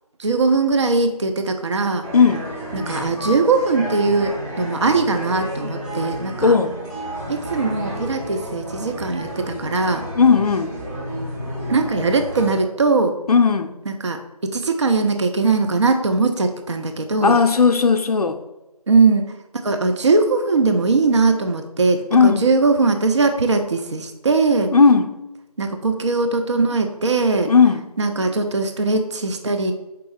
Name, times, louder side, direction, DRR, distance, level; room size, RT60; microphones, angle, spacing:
voice 1, 0.2-2.1 2.7-6.5 7.3-10.1 11.7-13.2 13.9-17.4 18.9-19.3 19.6-24.7 25.6-27.5 28.0-29.7, right 3 dB, 50° right, 6 dB, 0.4 m, -20 dB
sound 1, 2.0-12.5, equal, 20° right, 1.3 m, -31 dB
voice 2, 2.1-2.4 6.4-6.8 10.2-10.8 13.3-13.7 17.2-18.4 22.1-22.5 24.7-25.1 27.5-27.8, left 5 dB, 75° left, 6 dB, 0.5 m, -15 dB
4.7 x 2.4 x 4.6 m, 1.0 s
figure-of-eight pair, 165°, 20 cm